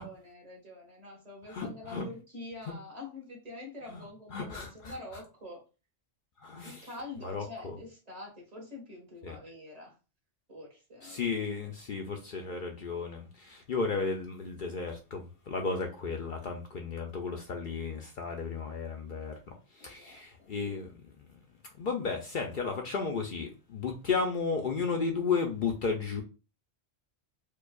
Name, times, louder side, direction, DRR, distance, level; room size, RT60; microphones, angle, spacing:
voice 1, 0.0-5.6 6.6-10.0 10.5-11.2 15.8-16.0 19.8-20.5, left 2 dB, 35° right, 1.5 m, -46 dB
voice 2, 1.6-2.0 4.3-4.7 6.4-6.7 7.2-7.4 9.2-9.4 11.1-19.3 19.8-20.9 21.8-26.2, left 4 dB, 55° left, 0.7 m, -33 dB
4.5 x 2.3 x 2.3 m
omnidirectional pair, 1.1 m